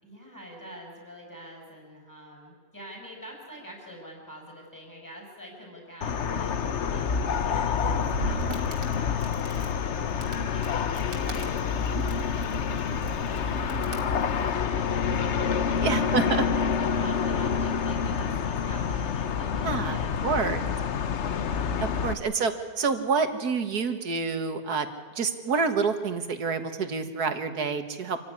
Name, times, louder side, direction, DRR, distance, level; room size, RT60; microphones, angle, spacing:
voice 1, 0.0-10.0 10.4-21.0 22.0-22.3, equal, 10° left, -1 dB, 6.7 m, -46 dB
sound 1, 6.0-22.1, left 6 dB, 50° left, 1.1 m, -27 dB
Crackle, 7.9-14.5, right 3 dB, 85° right, 3.4 m, -41 dB
voice 2, 15.8-16.4 19.6-20.6 21.8-24.9 25.2-28.2, right 5 dB, 65° right, 8 dB, 2.1 m, -28 dB
26.5 x 15.5 x 9.9 m, 1.5 s
omnidirectional pair, 1.8 m